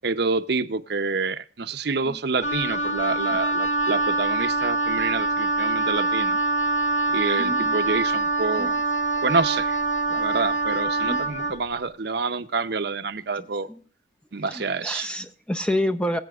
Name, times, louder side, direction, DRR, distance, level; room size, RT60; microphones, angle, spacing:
voice 1, 0.0-6.4 7.1-8.7 9.2-9.8 10.1-13.7 14.3-15.1, right 4 dB, 55° right, 10 dB, 0.7 m, -27 dB
Wind instrument woodwind instrument, 2.4-11.6, right 2 dB, 35° left, 1.0 m, -24 dB
voice 2, 7.4-7.8 8.6-8.8 11.0-11.6 13.3-13.8 14.3-16.2, left 1 dB, 5° left, 8 dB, 0.5 m, -30 dB
22.0 x 8.6 x 2.4 m, 0.41 s
head